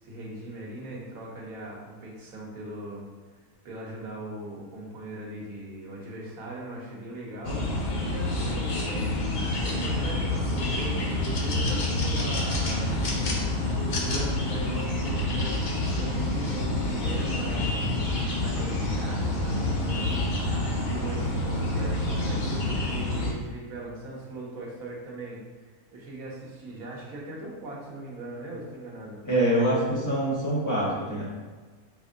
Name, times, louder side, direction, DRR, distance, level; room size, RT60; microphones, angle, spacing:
voice 1, 0.0-3.1 3.6-7.7 8.1-13.1 13.5-17.7 18.4-20.3 20.9-25.4 25.9-29.2, right 1 dB, 65° right, -4 dB, 1.4 m, -39 dB
sound 1, 7.4-23.3, left 1 dB, 80° left, 0.4 m, -27 dB
voice 2, 29.2-31.3, right 1 dB, 15° left, -9 dB, 1.3 m, -25 dB
4.3 x 3.5 x 2.5 m, 1.4 s
omnidirectional pair, 1.6 m